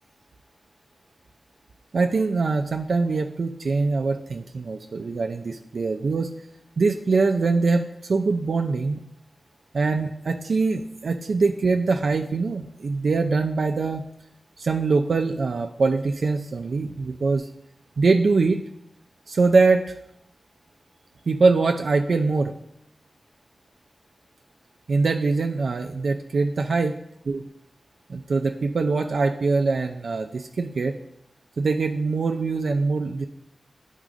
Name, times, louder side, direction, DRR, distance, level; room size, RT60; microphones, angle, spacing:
voice 1, 1.9-6.3 6.8-9.0 9.7-14.0 14.6-17.5 18.0-18.6 19.3-19.9 21.3-22.5 24.9-26.9 27.3-27.4 28.1-30.9 31.6-33.3, right 4 dB, 70° right, 4 dB, 0.4 m, -23 dB
9.1 x 3.6 x 5.0 m, 0.75 s
wide cardioid pair, 105°, 0 cm